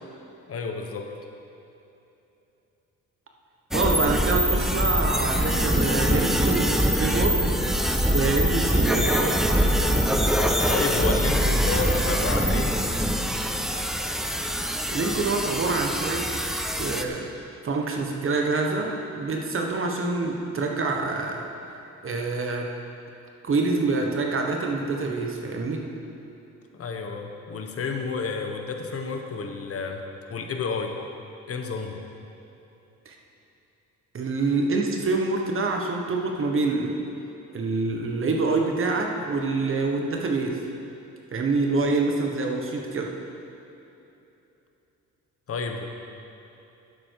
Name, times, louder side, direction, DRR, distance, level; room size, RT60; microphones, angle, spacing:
voice 1, 0.5-1.1 10.7-12.7 26.7-30.0 30.3-31.0 31.5-32.0 45.5-45.9, left 4 dB, 50° left, 4 dB, 1.1 m, -30 dB
sound 1, 3.7-17.0, equal, ahead, 0.6 m, -24 dB
voice 2, 3.7-7.4 7.7-7.8 8.1-9.4 14.9-16.3 16.7-17.3 17.6-21.5 22.0-22.7 23.4-25.9 33.0-33.1 34.1-36.9 37.5-40.6 41.3-43.1, right 3 dB, 45° right, 1 dB, 1.3 m, -26 dB
11.0 x 8.0 x 4.8 m, 2.9 s
cardioid pair, 90°, 30 cm